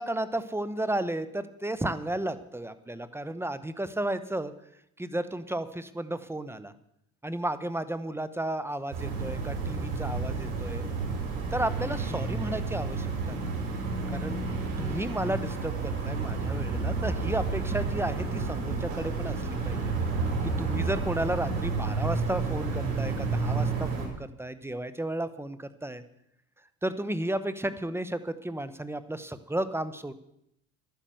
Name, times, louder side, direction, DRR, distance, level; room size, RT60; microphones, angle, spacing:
voice 1, 0.0-4.5 5.0-6.7 7.2-10.8 11.5-13.6 14.1-14.4 14.8-19.4 19.6-19.9 20.6-26.0 26.8-30.1, right 1 dB, 5° right, 13 dB, 1.0 m, -33 dB
sound 1, 8.9-24.1, right 4 dB, 85° right, 4.2 m, -30 dB
12.0 x 10.5 x 7.8 m, 0.77 s
supercardioid pair, 95°, 43 cm